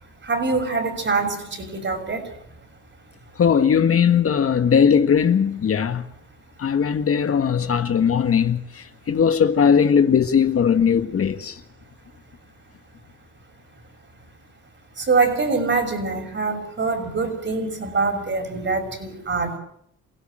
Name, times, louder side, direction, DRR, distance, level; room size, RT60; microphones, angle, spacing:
voice 1, 0.3-2.2 15.0-19.6, right 4 dB, 40° right, 6.4 m, -24 dB
voice 2, 3.4-6.0 6.6-11.5, left 7 dB, 50° left, 1.7 m, -19 dB
28.5 x 17.0 x 7.7 m
cardioid pair, 90°, 30 cm